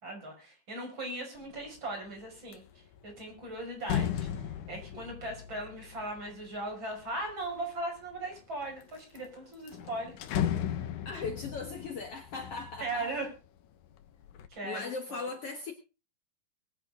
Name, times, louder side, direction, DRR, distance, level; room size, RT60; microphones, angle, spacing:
voice 1, 0.0-2.6 3.0-4.3 4.7-10.1 12.8-13.3 14.5-15.3, right 2 dB, 25° right, 1 dB, 6.2 m, -38 dB
sound 1, 1.4-1.8 2.2-7.5 8.1-8.8 9.2-9.3 9.5-13.5 13.8-14.5, left 10 dB, 70° left, 2.0 m, -36 dB
voice 2, 11.0-13.1 14.6-15.7, left 4 dB, 85° left, 5 dB, 1.3 m, -38 dB
21.5 x 10.5 x 3.7 m, 0.32 s
omnidirectional pair, 5.0 m